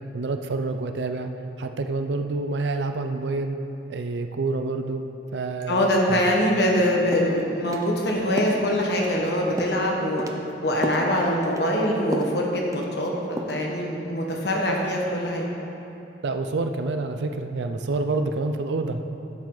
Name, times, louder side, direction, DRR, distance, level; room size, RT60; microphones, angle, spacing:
voice 1, 0.1-1.3 1.6-3.6 3.9-5.0 5.3-5.8 6.1-6.2 16.2-19.0, right 3 dB, 80° right, 7 dB, 0.5 m, -27 dB
voice 2, 5.7-10.2 10.6-15.5, equal, 70° left, -1 dB, 1.4 m, -23 dB
sound 1, 6.8-6.9 7.1-7.3 7.7-7.9 8.4-8.6 9.0-9.3 9.6-9.8 10.2-10.4 10.8-11.1 11.4-11.7 12.1-12.4 12.7-13.1 13.4-13.6, right 1 dB, 20° right, 0.6 m, -32 dB
11.5 x 7.5 x 3.9 m, 2.9 s
head